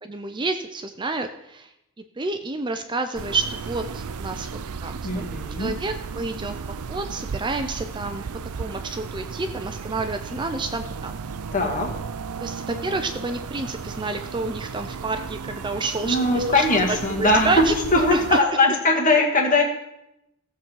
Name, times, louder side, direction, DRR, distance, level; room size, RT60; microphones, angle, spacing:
voice 1, 0.0-1.7 2.2-4.5 4.8-5.3 5.6-6.6 6.9-8.2 8.6-11.2 12.4-17.7 18.1-18.4, right 3 dB, 20° right, 7 dB, 0.5 m, -29 dB
sound 1, 3.1-18.4, right 5 dB, 85° right, 0.5 m, -34 dB
voice 2, 5.0-5.7 11.5-11.9 16.0-19.7, left 2 dB, 35° left, 1 dB, 1.9 m, -20 dB
16.0 x 7.4 x 4.7 m, 0.85 s
head